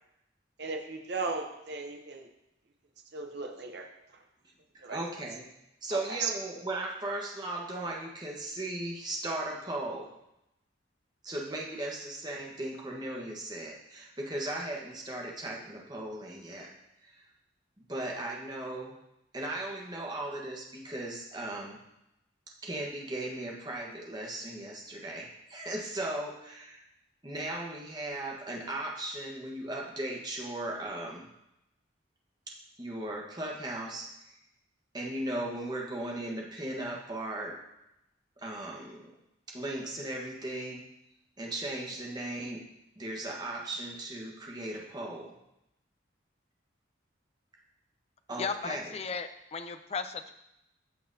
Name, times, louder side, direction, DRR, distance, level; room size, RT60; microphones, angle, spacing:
voice 1, 0.6-2.3 3.1-3.9 4.8-5.0 5.9-6.3, right 4 dB, 55° right, 3 dB, 0.8 m, -36 dB
voice 2, 4.9-5.4 5.8-10.1 11.2-16.7 17.0-17.1 17.9-18.9 19.3-21.8 22.6-26.8 27.2-31.3 32.8-34.1 34.9-37.6 38.4-39.0 39.5-40.8 41.4-42.6 43.0-45.3 48.3-48.9, right 1 dB, 20° right, -1 dB, 1.3 m, -37 dB
voice 3, 48.4-50.3, left 5 dB, 30° left, 9 dB, 0.4 m, -35 dB
14.0 x 6.0 x 2.8 m, 0.86 s
head